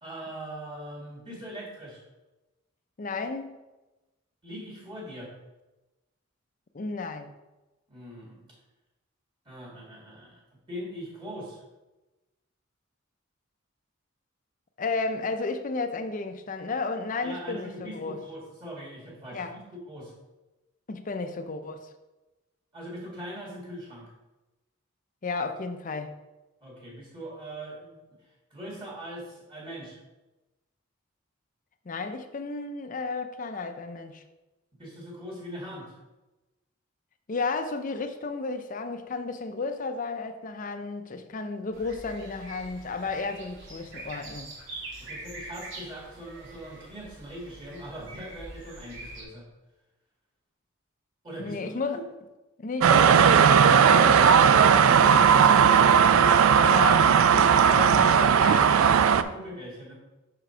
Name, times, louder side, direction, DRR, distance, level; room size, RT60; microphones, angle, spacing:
voice 1, 0.0-2.0 4.4-5.3 7.9-8.5 9.5-10.4 10.7-11.6 17.2-19.4 19.9-20.1 22.7-24.1 26.6-28.0 28.5-30.0 34.8-36.0 45.0-49.5 51.2-52.1 57.3-59.9, equal, 25° right, 2.0 m, -41 dB
voice 2, 3.0-3.6 6.7-7.3 14.8-18.2 19.3-19.6 20.9-21.9 25.2-26.2 31.9-34.2 37.3-44.5 51.4-52.1 52.6-58.7, left 4 dB, 40° left, 0.5 m, -33 dB
sound 1, 41.7-49.2, right 2 dB, 60° right, 1.6 m, -44 dB
sound 2, 52.8-59.2, right 7 dB, 80° right, 0.3 m, -17 dB
5.8 x 4.8 x 4.4 m
head